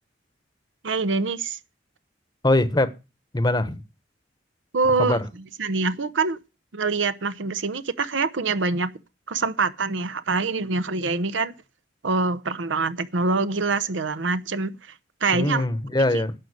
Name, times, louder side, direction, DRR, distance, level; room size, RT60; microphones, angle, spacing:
voice 1, 0.8-1.6 4.7-5.2 5.6-6.4 6.7-8.9 9.3-11.5 12.0-14.7 15.2-15.6, right 4 dB, 85° right, 0.8 m, -24 dB
voice 2, 2.4-2.9 3.3-3.8 5.0-5.3 15.3-16.3, left 1 dB, 20° left, 0.9 m, -22 dB
11.0 x 5.1 x 8.1 m
head